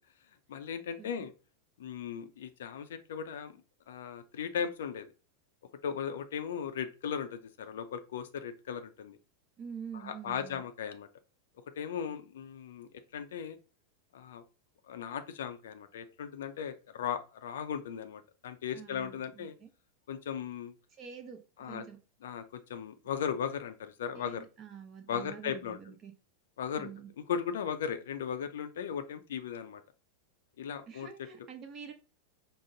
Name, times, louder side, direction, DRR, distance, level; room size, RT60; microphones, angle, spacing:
voice 1, 0.5-1.3 1.8-3.6 3.9-5.1 5.8-9.2 9.9-11.1 11.8-13.6 14.1-14.4 14.8-19.5 20.1-20.7 21.6-21.8 22.2-24.4 25.1-25.8 26.6-26.9 27.2-29.8 30.6-31.1, left 7 dB, 60° left, 0.4 m, -37 dB
voice 2, 9.6-10.6 18.7-19.7 21.0-22.0 24.1-26.1 26.8-27.1 30.9-31.9, right 7 dB, 30° right, 0.9 m, -46 dB
4.9 x 2.0 x 3.8 m
figure-of-eight pair, 90°, 0 cm